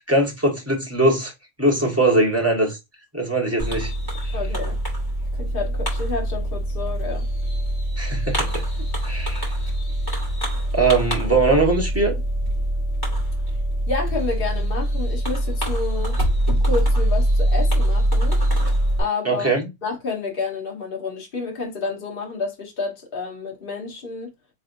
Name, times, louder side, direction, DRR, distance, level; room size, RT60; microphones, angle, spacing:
voice 1, 0.0-1.3 1.6-2.8 3.1-3.9 4.2-4.4 8.0-8.5 9.0-9.5 10.7-12.2 19.2-19.7, right 2 dB, 10° right, 1.2 m, -21 dB
Fireworks, 3.6-19.0, right 1 dB, 15° left, 2.1 m, -23 dB
voice 2, 4.3-4.8 5.4-7.3 13.9-16.2 16.7-18.4 19.0-19.5 19.8-24.3, left 4 dB, 40° left, 1.4 m, -29 dB
4.3 x 3.5 x 2.6 m
omnidirectional pair, 1.5 m